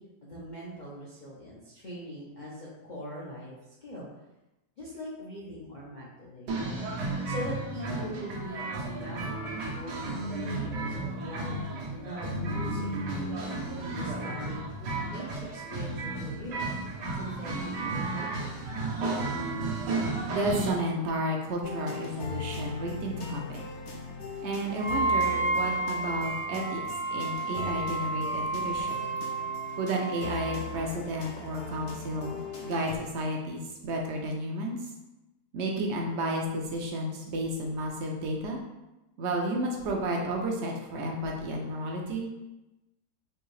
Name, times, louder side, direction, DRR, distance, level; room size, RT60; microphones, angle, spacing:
voice 1, 0.0-4.1 4.8-6.9 7.2-16.7 17.1-18.5, equal, 80° left, -7 dB, 0.4 m, -42 dB
sound 1, 6.5-20.7, right 2 dB, 85° right, 1.4 m, -33 dB
voice 2, 20.3-23.6 24.4-26.8 27.1-29.0 29.8-34.9 35.5-38.6 39.2-42.3, right 1 dB, 65° right, 0 dB, 0.6 m, -32 dB
sound 2, 21.6-33.0, left 4 dB, 60° left, 0.7 m, -40 dB
Wind instrument woodwind instrument, 24.7-30.6, right 3 dB, 25° left, 0.6 m, -31 dB
4.7 x 2.7 x 3.1 m, 1.0 s
omnidirectional pair, 1.8 m